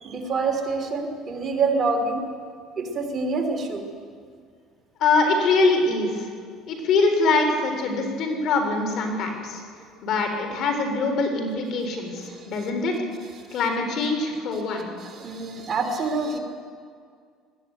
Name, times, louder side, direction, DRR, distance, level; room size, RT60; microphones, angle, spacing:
voice 1, 0.0-2.2 2.8-3.8 12.3-12.5 15.0-16.4, right 4 dB, 35° right, 3 dB, 3.3 m, -26 dB
voice 2, 5.0-6.3 6.7-9.6 10.0-13.0 13.5-14.9, left 3 dB, 55° left, 4 dB, 3.7 m, -23 dB
20.0 x 14.0 x 9.2 m, 2.1 s
cardioid pair, 115°, 0 cm